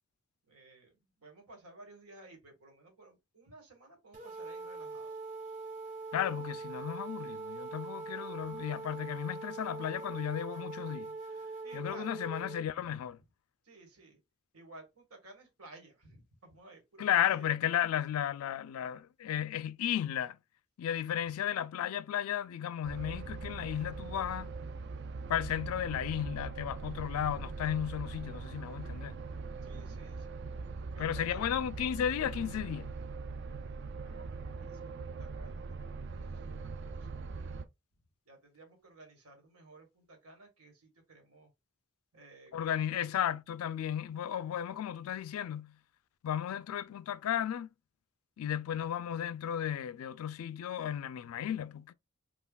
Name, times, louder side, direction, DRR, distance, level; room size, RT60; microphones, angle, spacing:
voice 1, 0.5-5.1 8.4-8.6 11.6-12.5 12.9-13.0 13.6-14.2 14.5-17.5 29.6-30.4 30.9-31.4 34.0-37.1 38.2-41.5 42.1-43.0, right 2 dB, 90° right, 1.5 m, -56 dB
sound 1, 4.1-12.6, right 3 dB, 35° right, 0.9 m, -42 dB
voice 2, 6.1-11.2 11.7-13.2 17.0-20.4 20.8-24.5 25.3-29.2 31.0-32.9 42.5-45.8 46.2-47.7 48.4-51.9, left 10 dB, 80° left, 0.3 m, -34 dB
sound 2, 22.8-37.6, right 4 dB, 50° right, 0.4 m, -41 dB
5.5 x 2.3 x 2.3 m
head